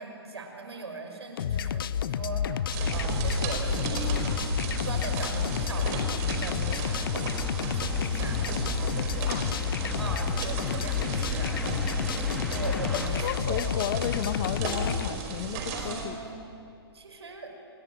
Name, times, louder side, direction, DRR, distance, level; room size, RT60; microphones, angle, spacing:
voice 1, 0.0-4.4 4.8-12.1 12.5-13.7 15.7-16.4 16.9-17.5, right 3 dB, 75° right, 4 dB, 5.8 m, -40 dB
sound 1, 1.4-15.1, left 9 dB, 55° left, 0.9 m, -30 dB
sound 2, 2.3-13.1, left 1 dB, 5° left, 3.1 m, -41 dB
sound 3, 2.7-16.1, right 5 dB, 35° right, 4.9 m, -34 dB
voice 2, 12.9-16.2, left 11 dB, 40° left, 11 dB, 1.5 m, -33 dB
27.5 x 21.0 x 9.3 m, 2.6 s
figure-of-eight pair, 125°, 14 cm